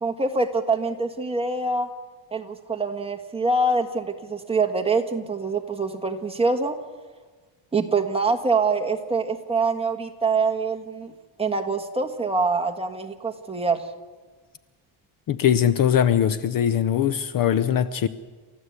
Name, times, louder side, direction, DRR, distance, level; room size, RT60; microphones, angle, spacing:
voice 1, 0.0-1.9 2.3-6.8 7.7-11.1 11.4-13.9, right 3 dB, 10° right, 4 dB, 1.5 m, -25 dB
voice 2, 15.3-18.1, left 9 dB, 45° left, 14 dB, 0.7 m, -21 dB
29.0 x 14.0 x 8.2 m, 1.4 s
cardioid pair, 165°, 48 cm